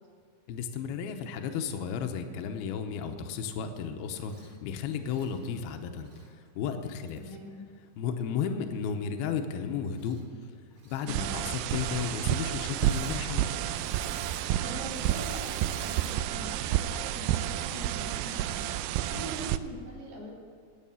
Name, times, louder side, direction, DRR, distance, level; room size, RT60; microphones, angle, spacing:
voice 1, 0.5-7.2 8.0-10.2 10.8-13.5 19.1-19.3, left 7 dB, 80° left, 5 dB, 2.7 m, -34 dB
Engine / Mechanisms, 4.2-4.5 5.0-6.3 7.1-7.2 9.9-10.4 10.7-11.1 11.7-12.1 12.6-13.2 13.5-16.2 16.7-17.0, right 2 dB, 45° right, 1.1 m, -50 dB
voice 2, 7.1-7.6 11.0-11.3 14.6-18.7 19.2-20.3, equal, 70° right, -5 dB, 5.3 m, -43 dB
sound 1, 11.1-19.6, right 12 dB, 90° right, 2.0 m, -30 dB
18.5 x 6.6 x 7.1 m, 2.4 s
omnidirectional pair, 4.7 m